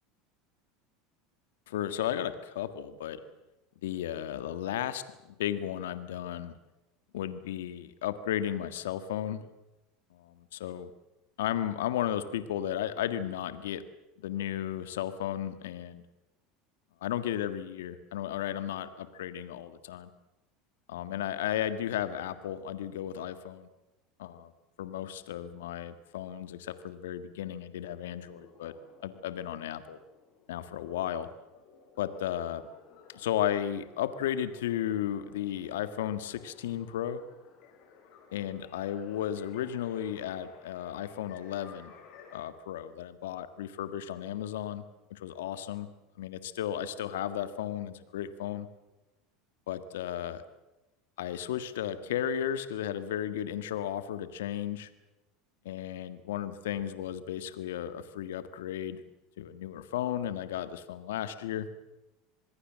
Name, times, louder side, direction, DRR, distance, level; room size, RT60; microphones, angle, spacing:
voice 1, 1.7-3.2 3.8-5.0 5.4-6.5 7.1-9.5 10.1-10.9 11.4-13.8 14.2-16.0 17.0-20.1 20.9-23.7 24.2-24.5 24.8-28.7 29.0-30.0 30.5-31.3 32.0-32.6 33.1-37.2 38.3-41.9 42.3-44.8 45.1-45.9 46.2-48.7 49.7-50.4 51.2-54.9 55.7-59.0 59.4-61.7, left 10 dB, 80° left, 12 dB, 1.7 m, -34 dB
sound 1, 28.1-42.4, left 6 dB, 60° left, 7.0 m, -57 dB
26.0 x 21.0 x 7.5 m, 0.99 s
hypercardioid pair, 90°, 0 cm